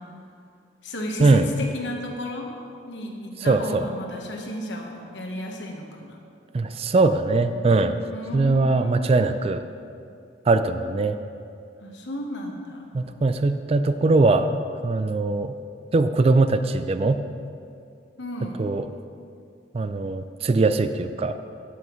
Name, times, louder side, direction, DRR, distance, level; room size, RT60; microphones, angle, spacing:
voice 1, 0.8-2.5 2.9-6.2 8.1-9.1 11.8-13.0 18.2-18.7, left 1 dB, 80° left, 1 dB, 1.2 m, -33 dB
voice 2, 3.4-3.9 6.5-8.0 8.3-9.6 10.5-11.2 12.9-14.5 14.8-15.6 15.9-17.2 18.6-18.9 19.7-21.3, right 3 dB, 35° right, 10 dB, 0.3 m, -21 dB
12.0 x 7.8 x 3.1 m, 2.4 s
head